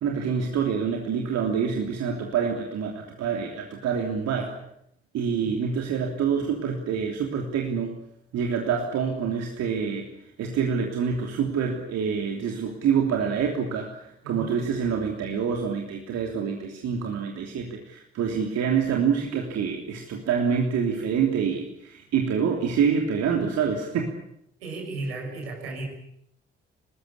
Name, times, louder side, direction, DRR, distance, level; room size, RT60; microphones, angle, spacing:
voice 1, 0.0-4.6 5.1-7.9 8.3-10.1 10.4-24.1, right 6 dB, 60° right, 2 dB, 3.2 m, -26 dB
voice 2, 24.6-25.8, right 3 dB, 80° right, 1 dB, 6.3 m, -34 dB
25.5 x 20.0 x 8.5 m, 0.73 s
figure-of-eight pair, 40°, 30 cm